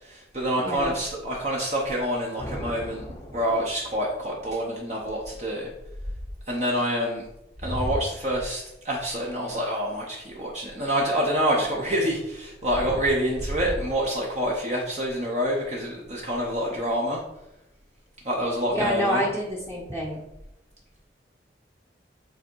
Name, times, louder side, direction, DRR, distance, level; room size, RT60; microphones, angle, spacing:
voice 1, 0.0-3.1 3.3-5.7 6.5-7.2 7.6-17.2 18.2-19.2, equal, 40° right, -2 dB, 1.0 m, -27 dB
voice 2, 0.6-0.9 18.7-20.2, equal, 10° right, -4 dB, 0.9 m, -28 dB
sound 1, 0.8-2.2 2.8-2.9 3.1-3.4 3.9-4.2 5.0-6.5 7.2-11.1 11.5-14.6 15.0-15.3 15.6-15.7 16.0-16.7 18.4-18.5 18.8-19.1 19.4-20.4, equal, 60° right, 2.2 m, -38 dB
sound 2, 2.4-4.3, equal, 20° left, 0.7 m, -39 dB
7.8 x 3.6 x 4.6 m, 0.91 s
head